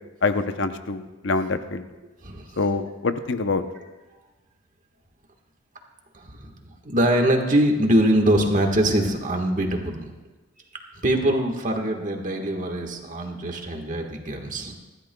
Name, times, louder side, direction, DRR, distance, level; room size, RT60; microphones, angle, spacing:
voice 1, 0.2-1.9 2.6-3.6, left 3 dB, 65° left, 9 dB, 0.8 m, -25 dB
voice 2, 2.2-2.9 6.1-10.2 11.0-14.7, right 1 dB, 40° right, 3 dB, 1.5 m, -23 dB
26.0 x 12.0 x 2.3 m, 1.2 s
head